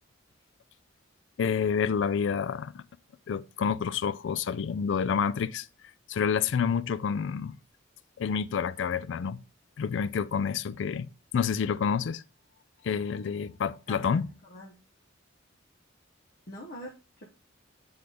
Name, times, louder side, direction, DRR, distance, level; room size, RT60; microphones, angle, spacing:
voice 1, 1.4-2.8 3.3-5.7 6.1-7.6 8.2-9.4 9.8-12.2 12.8-14.3, left 6 dB, 60° left, 0.3 m, -28 dB
voice 2, 13.9-14.8 16.5-17.3, left 1 dB, 45° left, 0.8 m, -44 dB
8.6 x 3.9 x 3.2 m
head